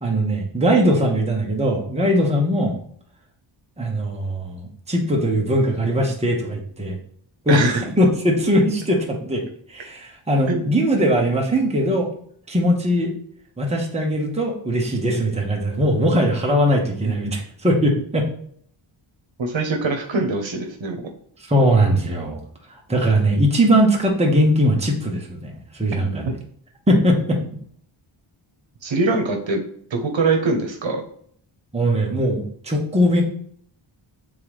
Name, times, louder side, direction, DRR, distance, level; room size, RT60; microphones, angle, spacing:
voice 1, 0.0-2.8 3.8-7.0 7.4-9.4 9.7-12.1 12.5-13.1 13.6-18.3 21.5-22.4 22.9-26.3 26.9-27.4 31.7-33.2, equal, 15° right, -1 dB, 1.1 m, -20 dB
voice 2, 7.5-7.8 10.5-10.7 19.4-21.0 25.9-26.3 28.8-29.6 29.9-31.0, right 3 dB, 65° right, 3 dB, 1.1 m, -23 dB
7.9 x 3.8 x 3.3 m, 0.62 s
wide cardioid pair, 170°, 50 cm